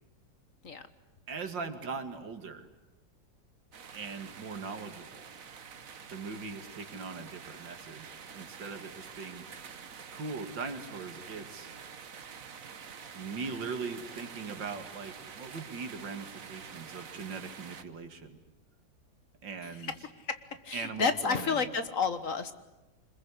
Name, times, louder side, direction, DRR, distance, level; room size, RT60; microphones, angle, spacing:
voice 1, 1.3-2.7 3.9-5.3 6.1-9.5 10.1-11.7 13.1-18.4 19.4-19.9 20.7-21.6, right 4 dB, 85° right, 8 dB, 2.8 m, -40 dB
sound 1, 3.7-17.8, right 6 dB, 50° right, 1.6 m, -47 dB
voice 2, 20.6-22.5, left 5 dB, 50° left, 11 dB, 1.7 m, -30 dB
25.5 x 21.5 x 9.8 m, 1.1 s
omnidirectional pair, 1.9 m